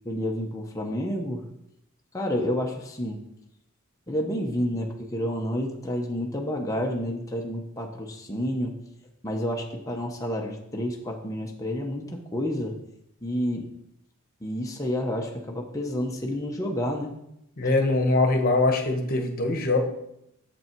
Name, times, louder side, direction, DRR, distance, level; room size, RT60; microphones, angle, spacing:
voice 1, 0.0-1.4 2.1-3.2 4.1-8.7 9.2-12.8 13.2-13.7 14.4-17.1 17.6-17.7, equal, 15° left, 0 dB, 0.9 m, -29 dB
voice 2, 17.6-19.8, left 2 dB, 40° left, 4 dB, 1.2 m, -22 dB
8.4 x 7.1 x 4.6 m, 0.81 s
head